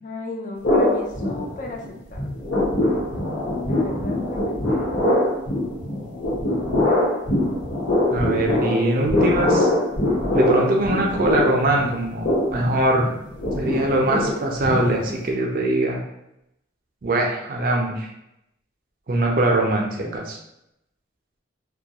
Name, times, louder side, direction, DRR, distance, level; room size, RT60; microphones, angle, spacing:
voice 1, 0.0-2.2 3.6-4.5, left 2 dB, 40° left, 1 dB, 0.3 m, -34 dB
sound 1, 0.6-1.9 2.1-15.3, left 1 dB, 60° left, 1.0 m, -23 dB
voice 2, 8.1-9.7 10.3-13.1 13.6-16.0 17.0-18.1 19.1-20.4, right 1 dB, 45° right, 0 dB, 0.4 m, -22 dB
2.3 x 2.2 x 2.8 m, 0.82 s
head